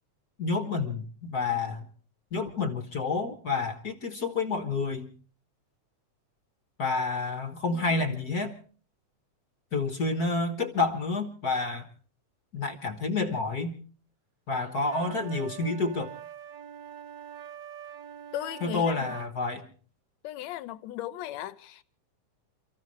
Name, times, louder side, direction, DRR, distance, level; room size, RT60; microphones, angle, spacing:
voice 1, 0.4-1.9 2.3-5.1 6.8-8.5 9.7-11.9 12.5-13.8 14.5-16.1 18.6-19.7, left 3 dB, 45° left, 1.3 m, -29 dB
sound 1, 14.9-19.3, right 9 dB, 55° right, 1.4 m, -44 dB
voice 2, 18.3-19.1 20.2-21.8, left 13 dB, 70° left, 2.0 m, -37 dB
29.0 x 14.5 x 3.2 m
omnidirectional pair, 3.4 m